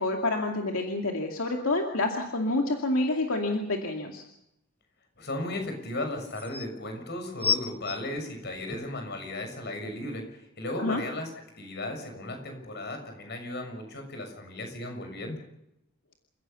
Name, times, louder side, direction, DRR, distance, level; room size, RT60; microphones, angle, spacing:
voice 1, 0.0-4.2 10.8-11.0, left 2 dB, 80° left, 2 dB, 2.5 m, -28 dB
sound 1, 4.1-4.2 5.8-5.9 6.2-6.7 7.4-9.0 9.7-9.8, left 6 dB, 10° left, 0.8 m, -31 dB
voice 2, 5.2-11.3 11.6-15.4, left 1 dB, 55° left, 5 dB, 6.7 m, -35 dB
29.0 x 16.0 x 7.0 m, 0.83 s
head